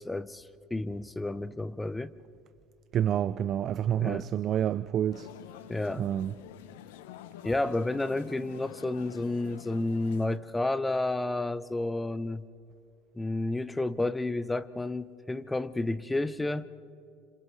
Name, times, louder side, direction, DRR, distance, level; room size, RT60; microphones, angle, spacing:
voice 1, 0.0-2.1 4.0-4.3 5.7-6.1 7.4-12.4 13.1-16.7, left 2 dB, 10° left, 0.7 m, -31 dB
voice 2, 2.9-5.3 6.0-6.3, right 10 dB, 50° right, 0.4 m, -28 dB
sound 1, 5.1-10.4, left 12 dB, 80° left, 0.8 m, -48 dB
30.0 x 27.0 x 3.3 m
hypercardioid pair, 85°, 0 cm